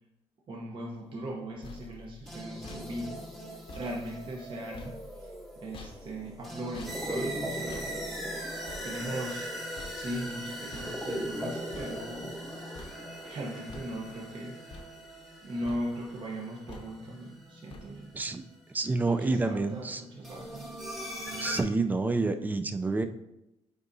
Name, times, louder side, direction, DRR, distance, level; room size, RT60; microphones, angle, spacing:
voice 1, 0.5-7.9 8.2-8.6 8.8-9.5 9.9-12.3 13.2-14.9 15.4-18.1 19.0-20.7, right 1 dB, 45° right, -2 dB, 0.9 m, -39 dB
sound 1, 1.2-12.5 12.7-13.3 13.7-14.3 14.7-15.4 15.6-16.2 16.7-17.2 17.7-18.2, left 3 dB, 50° left, 0.8 m, -50 dB
sound 2, 2.2-18.3 20.2-21.6, equal, ahead, 0.8 m, -39 dB
voice 2, 18.7-20.0 21.4-23.0, right 3 dB, 15° right, 8 dB, 0.4 m, -28 dB
8.1 x 4.8 x 2.7 m, 0.90 s
cardioid pair, 130°, 12 cm